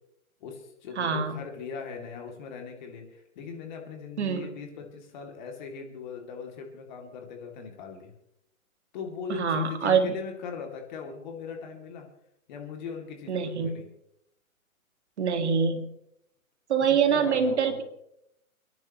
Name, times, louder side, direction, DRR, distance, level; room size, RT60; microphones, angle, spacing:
voice 1, 0.4-8.1 8.9-12.1 12.5-13.9 16.9-17.8, left 5 dB, 30° left, 2 dB, 2.6 m, -39 dB
voice 2, 1.0-1.4 4.2-4.5 9.3-10.1 13.3-13.7 15.2-15.9 16.7-17.8, right 6 dB, 50° right, 7 dB, 1.9 m, -25 dB
30.0 x 10.5 x 3.1 m, 0.78 s
hypercardioid pair, 160°, 43 cm